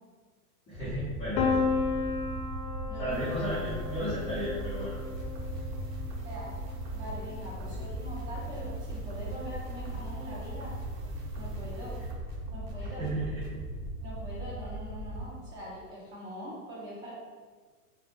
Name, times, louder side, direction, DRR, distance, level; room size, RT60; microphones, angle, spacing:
voice 1, 0.7-1.6 3.0-5.0 7.7-7.8 12.8-13.6, equal, 10° left, -14 dB, 0.4 m, -34 dB
sound 1, 0.7-15.2, right 1 dB, 40° right, 1.0 m, -38 dB
Piano, 1.4-7.1, left 4 dB, 65° left, 0.6 m, -33 dB
voice 2, 2.9-3.2 6.2-6.5 6.9-10.7 11.3-12.0 12.5-13.0 14.0-17.1, equal, 25° right, -8 dB, 1.1 m, -43 dB
sound 2, 3.1-13.6, right 4 dB, 80° right, 0.7 m, -49 dB
2.6 x 2.1 x 3.3 m, 1.5 s
hypercardioid pair, 135°, 48 cm